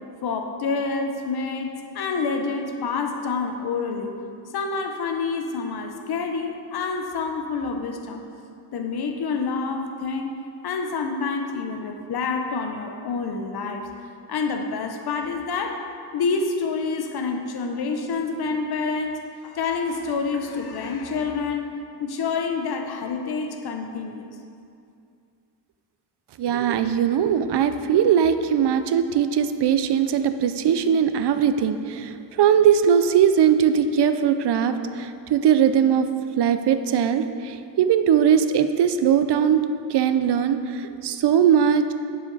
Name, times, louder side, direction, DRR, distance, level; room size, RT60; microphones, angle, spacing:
voice 1, 0.2-4.1 4.5-8.2 8.7-13.9 14.3-15.8 16.1-21.7 22.0-24.2, left 4 dB, 65° left, 4 dB, 0.8 m, -27 dB
voice 2, 26.4-36.1 36.4-39.6 39.9-41.8, right 8 dB, 75° right, 9 dB, 0.6 m, -20 dB
9.3 x 7.3 x 4.0 m, 2.4 s
wide cardioid pair, 155°, 41 cm